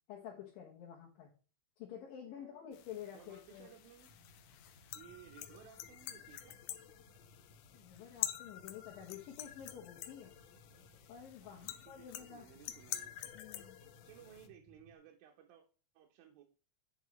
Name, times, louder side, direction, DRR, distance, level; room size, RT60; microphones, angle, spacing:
voice 1, 0.1-1.3 1.8-3.7 7.7-10.3 11.1-12.8 13.3-13.7, left 9 dB, 70° left, -2 dB, 2.8 m, -50 dB
voice 2, 2.3-2.7 3.1-4.1 4.9-6.6 11.4-13.1 14.0-15.6 15.9-16.4, right 10 dB, 75° right, 2 dB, 2.5 m, -59 dB
sound 1, 2.7-14.5, left 12 dB, 90° left, 2.6 m, -47 dB
sound 2, 4.1-15.0, equal, 25° right, 1.5 m, -64 dB
8.9 x 5.4 x 3.1 m, 0.37 s
omnidirectional pair, 4.4 m